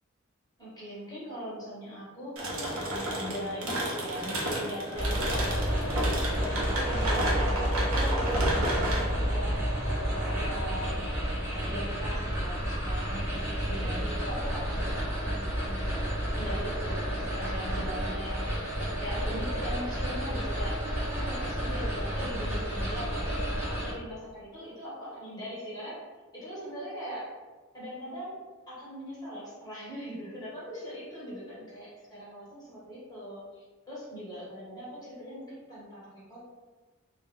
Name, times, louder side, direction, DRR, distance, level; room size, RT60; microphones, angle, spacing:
voice 1, 0.6-15.9 16.4-26.0 26.3-27.3 27.7-28.4 28.7-36.4, equal, 20° left, -8 dB, 1.0 m, -40 dB
sound 1, 2.4-11.0, right 1 dB, 85° right, 0.6 m, -32 dB
sound 2, 5.0-23.9, equal, 10° right, 0.8 m, -30 dB
2.3 x 2.0 x 3.1 m, 1.3 s
head